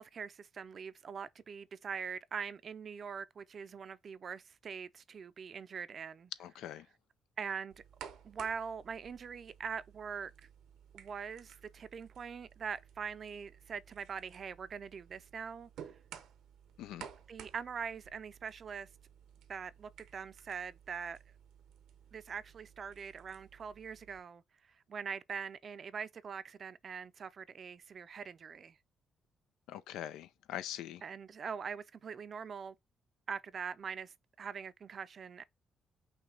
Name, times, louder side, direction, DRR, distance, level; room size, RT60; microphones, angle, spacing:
voice 1, 0.0-6.3 7.4-7.7 8.2-10.3 10.9-16.0 17.3-18.9 19.5-21.2 22.1-28.8 31.0-32.8 33.3-35.4, right 6 dB, 50° right, 0.4 m, -43 dB
voice 2, 6.4-6.9 16.8-17.1 29.7-31.0, left 11 dB, 90° left, 0.4 m, -43 dB
sound 1, 7.7-24.2, right 8 dB, 80° right, 0.7 m, -55 dB
5.8 x 2.3 x 3.8 m
cardioid pair, 90°, 0 cm